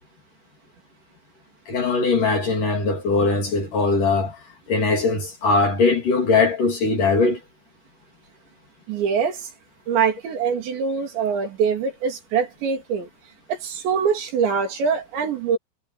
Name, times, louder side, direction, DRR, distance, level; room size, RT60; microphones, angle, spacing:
voice 1, 1.7-4.4 4.7-7.4, left 3 dB, 45° left, 4.3 m, -20 dB
voice 2, 8.9-9.5 9.9-13.1 13.5-15.6, right 6 dB, 60° right, 5.1 m, -23 dB
omnidirectional pair, 5.9 m